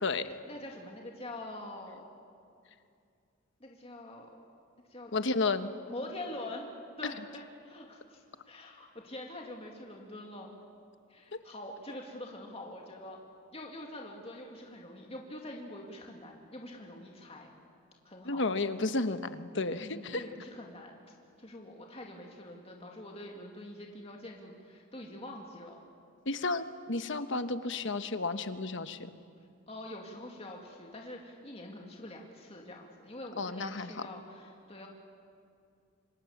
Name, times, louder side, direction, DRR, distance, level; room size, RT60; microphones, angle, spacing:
voice 1, 0.3-2.0 3.6-4.3 4.9-5.1 5.9-6.7 7.0-10.6 11.1-13.2 13.5-17.5 18.0-18.4 19.8-21.0 21.4-25.8 29.7-34.9, left 1 dB, 30° left, 0 dB, 2.3 m, -45 dB
voice 2, 5.1-5.7 18.2-20.2 26.3-29.1 33.4-33.9, left 3 dB, 60° left, 10 dB, 1.2 m, -32 dB
26.5 x 26.5 x 7.2 m, 2.4 s
head